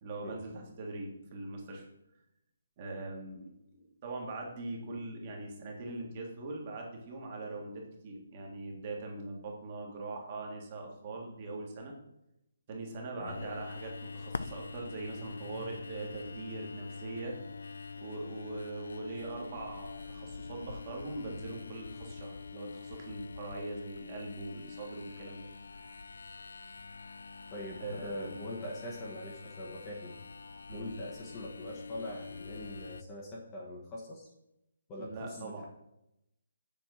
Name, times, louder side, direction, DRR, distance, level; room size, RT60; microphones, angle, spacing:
voice 1, 0.0-1.9 2.8-11.9 12.7-17.3 18.0-25.5 27.8-28.4 30.7-30.9 35.0-35.6, right 2 dB, 25° right, 0 dB, 1.6 m, -41 dB
sound 1, 13.3-33.0, left 4 dB, 80° left, 0.4 m, -45 dB
voice 2, 27.5-30.2 30.7-34.3 34.9-35.6, left 1 dB, 15° left, -2 dB, 1.1 m, -43 dB
7.1 x 4.3 x 6.3 m, 0.86 s
hypercardioid pair, 170°, 0 cm